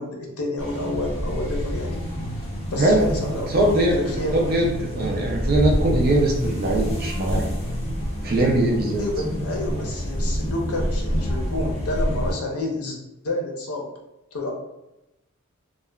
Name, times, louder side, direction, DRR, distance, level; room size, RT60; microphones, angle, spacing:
voice 1, 0.0-2.1 2.7-4.5 9.0-13.0 13.2-13.9 14.3-14.5, left 2 dB, 80° left, 0 dB, 0.6 m, -29 dB
sound 1, 0.6-12.3, equal, 25° left, 0.6 m, -27 dB
voice 2, 3.5-3.9 4.3-7.5 8.2-9.0, right 1 dB, 40° right, -1 dB, 0.4 m, -21 dB
2.8 x 2.1 x 2.3 m, 0.94 s
head